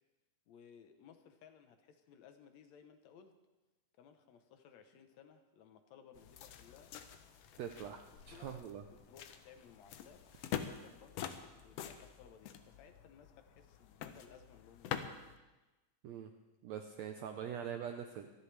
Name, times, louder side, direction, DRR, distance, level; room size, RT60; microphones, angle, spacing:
voice 1, 0.5-3.3 4.0-6.9 7.5-7.6 8.1-8.6 8.9-11.3 11.6-15.1, left 7 dB, 65° left, 7 dB, 2.0 m, -60 dB
sound 1, 6.1-15.4, left 9 dB, 85° left, 1.4 m, -46 dB
voice 2, 7.6-8.0 8.3-8.8 16.0-16.3 16.6-18.3, right 8 dB, 80° right, 6 dB, 1.6 m, -43 dB
25.5 x 11.0 x 3.3 m, 1.1 s
omnidirectional pair, 3.9 m